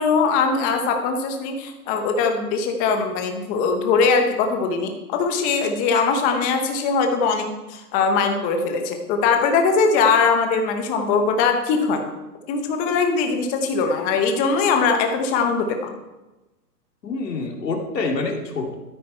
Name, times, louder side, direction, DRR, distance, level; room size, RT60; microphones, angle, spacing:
voice 1, 0.0-12.1 12.5-15.9, left 5 dB, 15° left, 5 dB, 0.9 m, -21 dB
voice 2, 17.0-18.7, left 3 dB, 85° left, 2 dB, 2.7 m, -26 dB
13.5 x 8.6 x 4.5 m, 1.1 s
hypercardioid pair, 155°, 48 cm